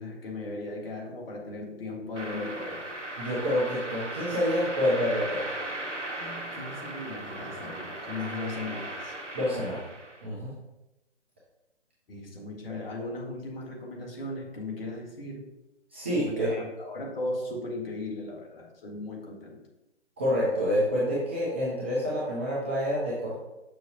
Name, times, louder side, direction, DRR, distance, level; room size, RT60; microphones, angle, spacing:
voice 1, 0.0-2.9 6.2-9.1 9.7-9.9 12.1-15.5 16.3-19.6, left 2 dB, 50° left, -1 dB, 1.8 m, -37 dB
sound 1, 2.2-10.3, right 1 dB, 80° right, 1.4 m, -37 dB
voice 2, 3.2-5.5 9.3-9.8 10.2-10.5 15.9-16.5 20.2-23.3, equal, 10° right, -7 dB, 0.5 m, -27 dB
6.5 x 6.3 x 2.9 m, 0.98 s
figure-of-eight pair, 140°, 36 cm